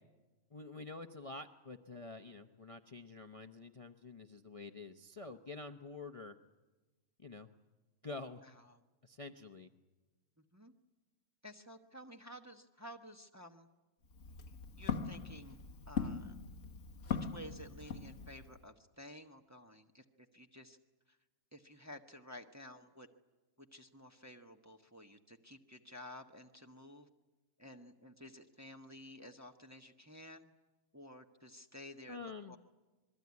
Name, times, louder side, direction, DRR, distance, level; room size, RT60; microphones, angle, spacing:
voice 1, 0.5-6.4 7.2-7.5 8.0-8.4 9.0-9.7 32.1-32.6, left 3 dB, 30° left, 5 dB, 0.8 m, -48 dB
voice 2, 8.4-8.8 10.5-10.7 11.4-13.7 14.8-15.6 15.9-16.4 17.1-20.0 20.3-20.8 21.1-21.2 21.5-23.1 23.6-27.1 27.6-30.5 30.9-32.6, left 1 dB, 15° right, 4 dB, 1.0 m, -53 dB
Walk footsteps, 14.0-18.6, left 6 dB, 60° left, 1.6 m, -41 dB
27.0 x 21.5 x 9.6 m, 1.2 s
omnidirectional pair, 1.5 m